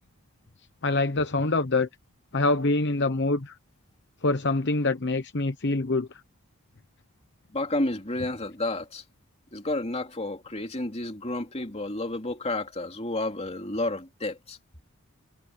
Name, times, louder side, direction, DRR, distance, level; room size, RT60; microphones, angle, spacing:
voice 1, 0.8-1.9 2.3-3.6 4.2-6.2 8.2-8.3, left 2 dB, 50° left, 1.0 m, -25 dB
voice 2, 7.5-9.0 9.5-14.6, left 2 dB, 30° left, 2.9 m, -31 dB
head